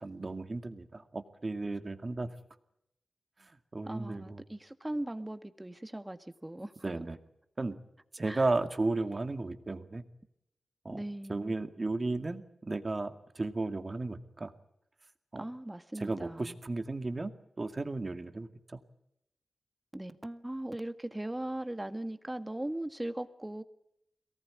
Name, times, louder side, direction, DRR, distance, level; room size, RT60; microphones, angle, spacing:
voice 1, 0.0-2.3 3.4-4.4 6.8-7.2 7.6-7.8 8.1-10.0 10.8-11.0 11.3-14.5 15.3-15.4 16.0-17.3 17.6-18.8, right 2 dB, 45° right, 2.2 m, -34 dB
voice 2, 3.9-6.7 8.2-8.5 10.9-11.5 15.4-16.6 19.9-23.6, right 1 dB, 20° right, 1.8 m, -39 dB
23.0 x 18.5 x 9.7 m
cardioid pair, 45°, 0 cm